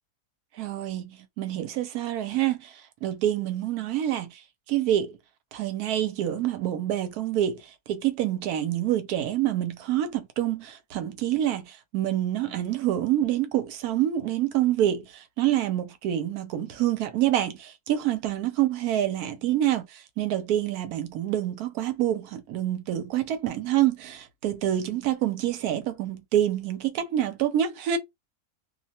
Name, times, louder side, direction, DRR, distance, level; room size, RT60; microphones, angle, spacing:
voice 1, 0.6-4.4 4.7-5.2 5.5-28.0, right 12 dB, 75° right, 1.0 m, -27 dB
2.7 x 2.1 x 2.8 m
omnidirectional pair, 1.7 m